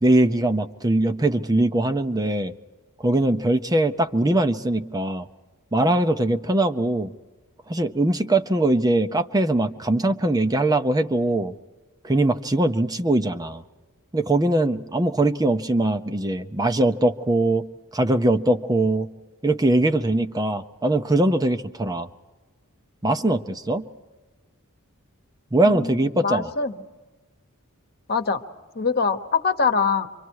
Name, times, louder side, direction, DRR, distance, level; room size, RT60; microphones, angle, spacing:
voice 1, 0.0-2.5 3.0-5.3 5.7-7.1 7.7-11.5 12.0-13.6 14.1-17.7 17.9-19.1 19.4-22.1 23.0-23.9 25.5-26.5, right 1 dB, 15° right, 8 dB, 0.6 m, -21 dB
voice 2, 25.6-26.8 28.1-28.4 28.7-30.1, left 5 dB, 45° left, 8 dB, 1.1 m, -23 dB
27.5 x 24.5 x 4.7 m, 1.2 s
head